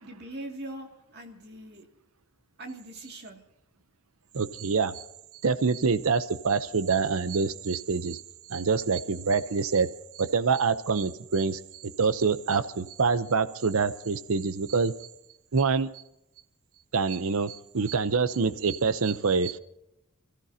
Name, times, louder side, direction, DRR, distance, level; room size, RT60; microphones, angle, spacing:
voice 1, 0.0-0.9 1.1-1.9 2.6-3.4, right 1 dB, 45° right, 2 dB, 2.4 m, -41 dB
voice 2, 4.3-5.0 5.4-8.2 8.5-9.9 10.1-14.9 15.5-15.9 16.9-19.6, right 5 dB, 70° right, 13 dB, 0.7 m, -26 dB
28.5 x 14.5 x 2.8 m, 0.86 s
head